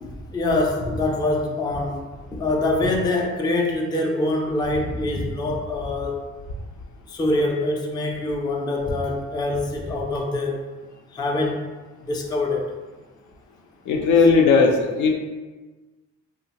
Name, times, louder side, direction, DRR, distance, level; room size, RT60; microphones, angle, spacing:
voice 1, 0.0-6.2 7.1-10.6 11.1-11.6 12.0-12.7, left 2 dB, 15° left, 1 dB, 0.3 m, -24 dB
voice 2, 13.9-15.2, left 4 dB, 70° left, 2 dB, 0.5 m, -17 dB
2.8 x 2.1 x 2.8 m, 1.3 s
cardioid pair, 90°, 30 cm